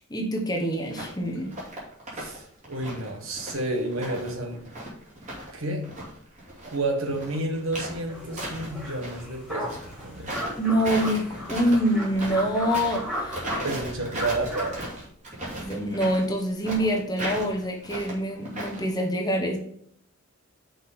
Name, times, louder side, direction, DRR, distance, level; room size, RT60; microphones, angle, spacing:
voice 1, 0.0-1.5 10.6-13.5 15.6-19.6, equal, 20° left, 1 dB, 1.0 m, -26 dB
sound 1, 0.9-1.2 1.5-2.4 2.6-5.5 5.8-9.2 9.6-18.9, right 1 dB, 30° right, 2.5 m, -36 dB
voice 2, 2.1-4.6 5.5-5.9 6.6-10.4 13.6-14.8, right 2 dB, 70° right, 3 dB, 1.5 m, -30 dB
sound 2, 8.1-14.8, equal, 5° right, 2.3 m, -36 dB
6.1 x 5.0 x 5.3 m, 0.67 s
head